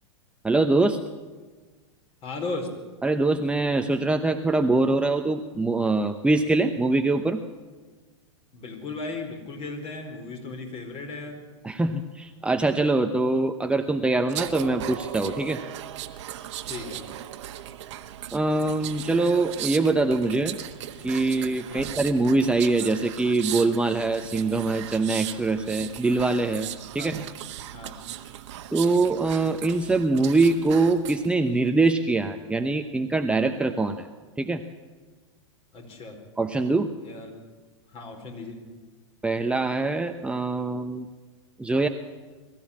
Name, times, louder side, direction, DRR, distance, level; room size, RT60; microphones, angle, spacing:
voice 1, 0.4-1.0 3.0-7.4 11.6-15.6 18.3-20.6 21.0-26.7 26.9-27.2 28.7-34.1 34.4-34.6 36.4-36.9 39.2-41.1 41.6-41.9, right 3 dB, 5° right, 6 dB, 0.9 m, -23 dB
voice 2, 2.2-2.7 8.5-11.4 16.7-17.0 21.7-21.9 27.0-27.1 27.7-28.0 35.7-36.2 37.0-37.3 37.9-38.6, left 3 dB, 35° left, 4 dB, 4.8 m, -36 dB
sound 1, 14.3-31.3 31.7-31.9, right 12 dB, 60° right, 1.4 m, -37 dB
22.0 x 14.5 x 8.7 m, 1.4 s
hypercardioid pair, 105°, 17 cm